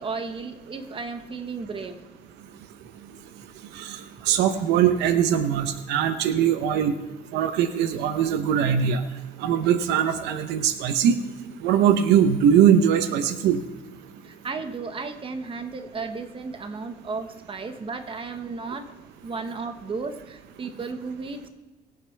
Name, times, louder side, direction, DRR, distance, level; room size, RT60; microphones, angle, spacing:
voice 1, 0.0-2.0 14.2-18.9 19.2-21.5, right 4 dB, 30° right, 7 dB, 1.3 m, -34 dB
voice 2, 4.3-6.9 7.3-9.0 9.4-11.2 11.6-13.6, right 9 dB, 85° right, 10 dB, 0.8 m, -21 dB
23.0 x 8.0 x 3.4 m, 1.2 s
cardioid pair, 110°, 17 cm